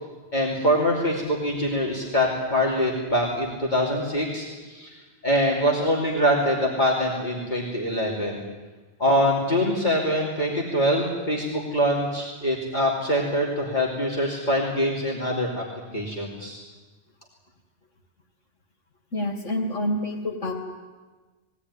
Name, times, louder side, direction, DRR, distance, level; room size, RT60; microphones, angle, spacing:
voice 1, 0.3-4.9 5.2-8.4 9.0-15.7 15.9-16.6, equal, 40° left, -3 dB, 3.0 m, -24 dB
voice 2, 19.1-20.5, left 1 dB, 80° left, 3 dB, 3.0 m, -27 dB
20.5 x 17.5 x 9.8 m, 1.3 s
omnidirectional pair, 1.2 m